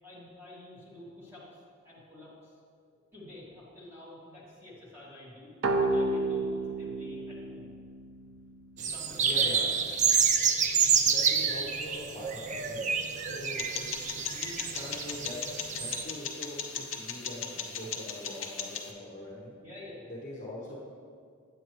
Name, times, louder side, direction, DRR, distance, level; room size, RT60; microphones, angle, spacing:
voice 1, 0.0-1.5 1.8-2.5 2.9-7.7 8.9-10.3 19.6-20.1, left 1 dB, 10° right, -9 dB, 2.2 m, -49 dB
sound 1, 5.6-9.1, right 2 dB, 80° right, 0.7 m, -31 dB
sound 2, 8.8-16.0, right 6 dB, 35° right, 0.4 m, -28 dB
voice 2, 9.2-9.7 11.0-19.6 20.1-20.8, left 1 dB, 35° left, -4 dB, 1.1 m, -43 dB
sound 3, 13.6-18.9, left 6 dB, 65° left, 0.7 m, -38 dB
8.7 x 8.2 x 3.1 m, 2.1 s
head